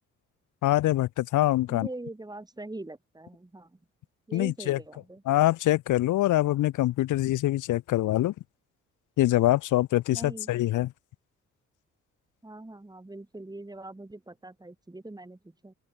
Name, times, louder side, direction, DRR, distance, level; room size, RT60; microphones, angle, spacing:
voice 1, 0.6-1.9 4.3-4.8 5.3-8.3 9.2-10.9, left 15 dB, 85° left, 1.7 m, -24 dB
voice 2, 1.7-3.8 4.3-5.2 10.1-10.6 12.4-15.7, right 2 dB, 15° right, 7.3 m, -42 dB
cardioid pair, 90°, 30 cm